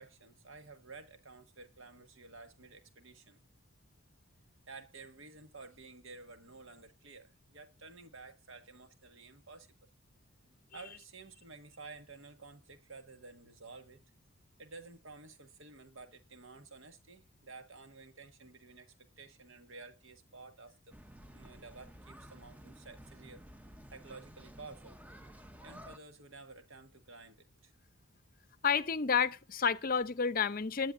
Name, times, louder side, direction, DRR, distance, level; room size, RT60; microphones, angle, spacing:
voice 1, 0.0-3.4 4.7-9.7 10.7-14.0 14.6-21.0 21.3-23.4 23.9-25.0 25.6-27.7, right 3 dB, 65° right, 1.6 m, -52 dB
sound 1, 20.9-26.0, equal, 5° right, 0.7 m, -53 dB
voice 2, 28.6-30.9, left 6 dB, 40° left, 0.6 m, -30 dB
19.5 x 10.0 x 2.5 m
head